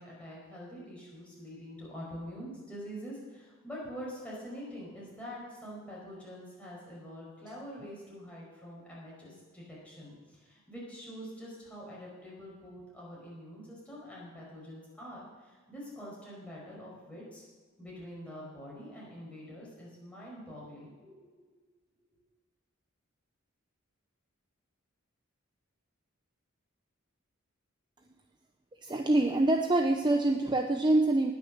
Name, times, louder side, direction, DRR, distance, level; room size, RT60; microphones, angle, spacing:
voice 1, 0.0-17.4 17.8-21.3, equal, 5° left, -6 dB, 5.1 m, -45 dB
voice 2, 28.8-31.3, right 2 dB, 20° right, 4 dB, 0.6 m, -25 dB
19.5 x 6.7 x 6.6 m, 1.4 s
head